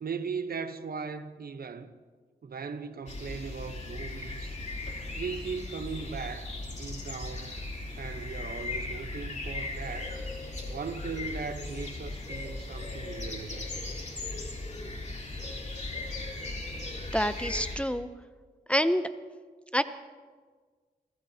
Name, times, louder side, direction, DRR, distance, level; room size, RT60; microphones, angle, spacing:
voice 1, 0.0-1.9 2.4-4.6 5.1-7.6 8.0-10.2 10.7-13.7, right 5 dB, 70° right, 0.9 m, -38 dB
sound 1, 3.1-17.8, left 2 dB, 45° left, 3.3 m, -37 dB
voice 2, 17.1-18.1 18.7-19.0 19.7-19.8, equal, 5° left, 0.6 m, -26 dB
28.0 x 16.5 x 2.8 m
wide cardioid pair, 80°, 16 cm